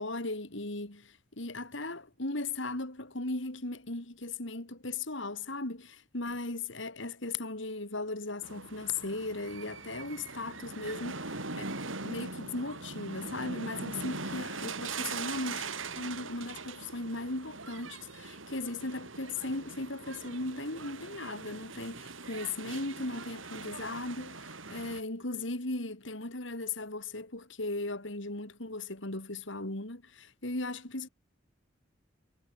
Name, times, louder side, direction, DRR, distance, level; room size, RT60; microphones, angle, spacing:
voice 1, 0.0-11.7 12.0-31.1, left 2 dB, 75° left, 3.4 m, -37 dB
sound 1, 8.4-25.0, right 4 dB, 90° right, 7.4 m, -41 dB
head